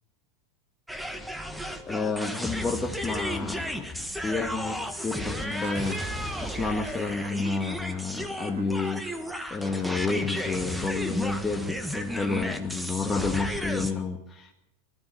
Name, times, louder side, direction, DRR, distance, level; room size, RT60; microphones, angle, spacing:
sound 1, 0.9-13.9, equal, 5° right, 1.6 m, -34 dB
voice 1, 1.9-3.9 4.2-4.8 5.0-9.1 9.5-14.5, left 4 dB, 15° left, 0 dB, 1.7 m, -30 dB
Fowl / Bird / Water, 4.4-11.0, right 6 dB, 85° right, 4.3 m, -50 dB
21.0 x 14.0 x 9.7 m, 0.83 s
supercardioid pair, 140°, 0 cm